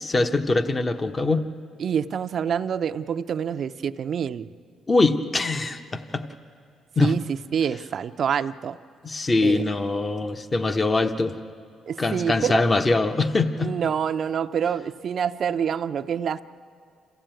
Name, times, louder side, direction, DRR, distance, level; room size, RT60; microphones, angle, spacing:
voice 1, 0.0-1.5 4.9-6.2 7.0-7.2 9.0-11.4 12.0-13.7, left 3 dB, 30° left, 8 dB, 0.9 m, -23 dB
voice 2, 1.8-4.5 7.0-7.2 7.5-8.8 9.4-9.7 11.9-12.6 13.6-16.4, right 8 dB, 55° right, 10 dB, 0.5 m, -26 dB
27.0 x 15.5 x 9.1 m, 2.4 s
cardioid pair, 90°, 0 cm